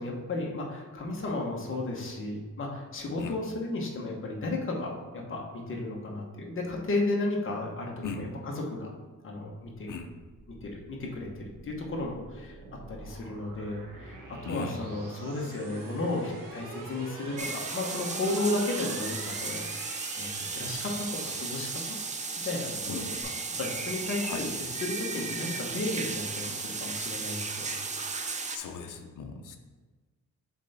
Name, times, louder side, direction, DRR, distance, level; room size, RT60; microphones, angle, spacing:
voice 1, 0.0-8.9 9.2-9.9 10.6-21.8 22.4-27.8, left 2 dB, 40° left, -1 dB, 1.1 m, -34 dB
sound 1, 10.2-23.2, right 2 dB, 90° right, 1.2 m, -45 dB
voice 2, 14.4-14.8 22.9-23.1 24.2-24.4 28.5-29.6, left 5 dB, 75° left, 5 dB, 0.7 m, -38 dB
sound 2, 17.4-28.6, right 4 dB, 25° right, 0.4 m, -35 dB
7.3 x 3.4 x 4.2 m, 1.3 s
wide cardioid pair, 175°, 32 cm